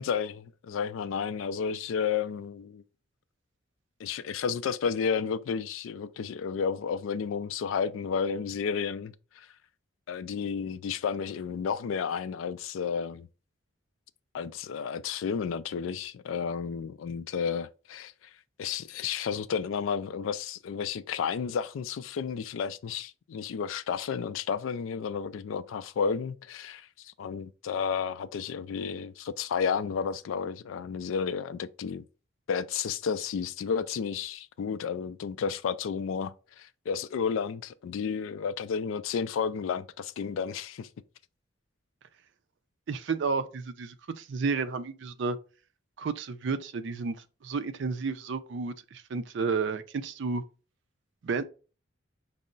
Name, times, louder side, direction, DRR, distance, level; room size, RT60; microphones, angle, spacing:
voice 1, 0.0-2.8 4.0-9.5 10.1-13.3 14.3-18.1 18.6-32.0 32.5-40.9, left 6 dB, 80° left, 0.3 m, -32 dB
voice 2, 42.9-45.4 46.0-47.2 47.4-50.4 51.2-51.4, right 4 dB, 65° right, 0.4 m, -31 dB
5.3 x 2.0 x 3.8 m
head